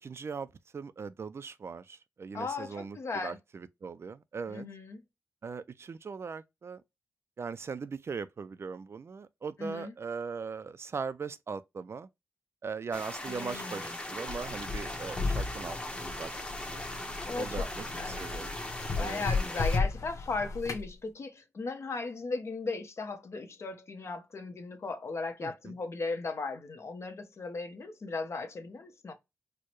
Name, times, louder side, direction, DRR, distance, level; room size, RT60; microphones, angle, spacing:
voice 1, 0.0-4.7 5.4-6.8 7.4-12.1 12.6-16.3 16.7-16.9 17.4-18.5 19.0-19.3 25.4-25.7, right 5 dB, 55° right, 0.4 m, -40 dB
voice 2, 2.3-3.4 4.5-5.0 9.6-9.9 13.3-13.8 17.2-17.5 17.9-18.2 19.0-29.1, left 3 dB, 60° left, 0.9 m, -37 dB
sound 1, 12.9-19.8, left 1 dB, 20° left, 0.9 m, -39 dB
sound 2, 14.3-20.9, left 4 dB, 90° left, 0.9 m, -34 dB
4.5 x 2.1 x 3.0 m
wide cardioid pair, 85°, 5 cm